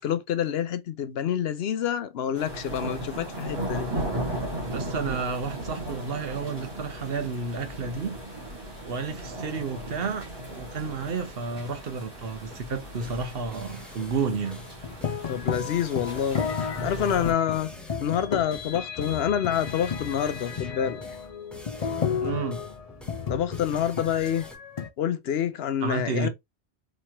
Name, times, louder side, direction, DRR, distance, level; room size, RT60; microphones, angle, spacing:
voice 1, 0.0-3.9 15.3-17.7 18.0-21.0 23.3-24.5 25.0-26.3, left 9 dB, 70° left, 0.8 m, -27 dB
sound 1, 2.3-17.3, right 1 dB, 25° right, 1.9 m, -36 dB
voice 2, 4.7-8.1 8.9-14.6 22.2-22.6 25.8-26.3, right 5 dB, 65° right, 1.0 m, -31 dB
sound 2, 9.7-24.6, equal, ahead, 0.7 m, -47 dB
sound 3, 14.4-24.9, left 6 dB, 45° left, 0.6 m, -33 dB
4.2 x 3.0 x 2.8 m
omnidirectional pair, 1.1 m